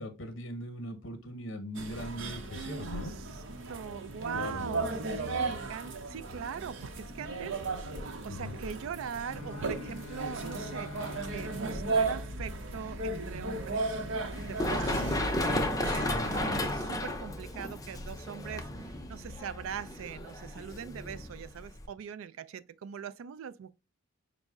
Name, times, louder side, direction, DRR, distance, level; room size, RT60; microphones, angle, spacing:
voice 1, 0.0-3.1 4.3-4.6 8.3-8.6 14.9-15.2 16.4-16.6, left 1 dB, 65° left, 0.8 m, -40 dB
sound 1, 1.7-16.7, right 3 dB, 65° right, 0.7 m, -36 dB
voice 2, 2.2-3.4 3.7-10.9 11.3-13.9 14.4-15.7 15.9-23.7, right 7 dB, 85° right, 0.3 m, -42 dB
Bowed string instrument, 9.1-13.2, left 6 dB, 90° left, 0.4 m, -47 dB
Run, 14.3-21.9, left 1 dB, 15° left, 0.5 m, -34 dB
5.3 x 2.1 x 3.5 m
head